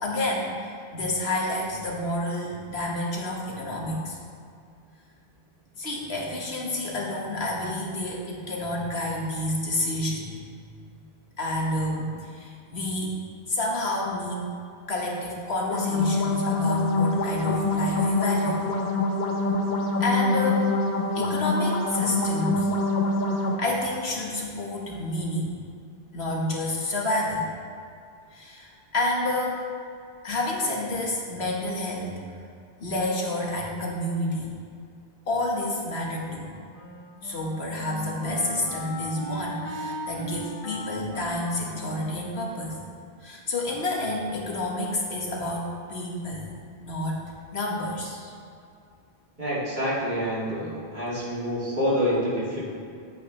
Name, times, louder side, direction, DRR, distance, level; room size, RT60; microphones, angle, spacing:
voice 1, 0.0-4.2 5.8-10.3 11.4-13.2 13.5-14.4 14.9-18.6 20.0-20.7 21.2-22.7 23.6-25.6 26.1-27.5 28.3-29.6 30.2-32.2 32.8-34.5 35.3-36.5 37.2-42.8 43.2-46.5 46.8-48.3, left 1 dB, 90° left, -3 dB, 1.8 m, -29 dB
sound 1, 15.6-23.5, left 2 dB, 50° left, 1.1 m, -25 dB
Wind instrument woodwind instrument, 36.2-43.4, equal, 30° left, 1.3 m, -38 dB
voice 2, 49.4-52.6, equal, 50° right, -9 dB, 2.9 m, -27 dB
10.5 x 8.8 x 3.3 m, 2.4 s
omnidirectional pair, 1.0 m